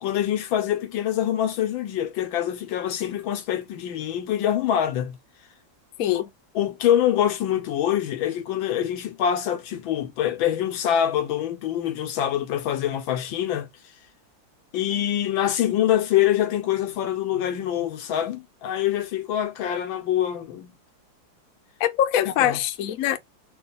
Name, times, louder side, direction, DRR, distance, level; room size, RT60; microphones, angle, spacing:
voice 1, 0.0-5.2 6.1-6.2 6.5-13.7 14.7-20.8 22.3-22.6, left 10 dB, 90° left, 1.6 m, -25 dB
voice 2, 21.8-23.2, left 11 dB, 65° left, 0.9 m, -23 dB
3.8 x 2.3 x 4.0 m
omnidirectional pair, 2.1 m